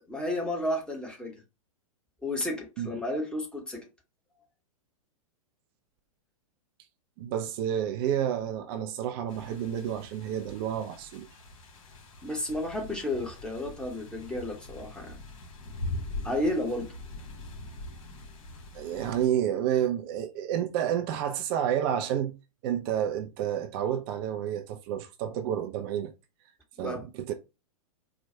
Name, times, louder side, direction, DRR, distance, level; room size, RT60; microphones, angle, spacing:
voice 1, 0.1-1.4 2.2-3.9 12.2-15.2 16.2-16.9 26.8-27.0, left 1 dB, 5° left, 1.3 m, -32 dB
voice 2, 7.2-11.3 18.7-22.3 22.6-26.1 26.8-27.3, right 10 dB, 40° right, 0.5 m, -30 dB
sound 1, 9.3-19.3, left 2 dB, 60° left, 2.1 m, -42 dB
4.5 x 2.4 x 3.3 m
figure-of-eight pair, 110°, 19 cm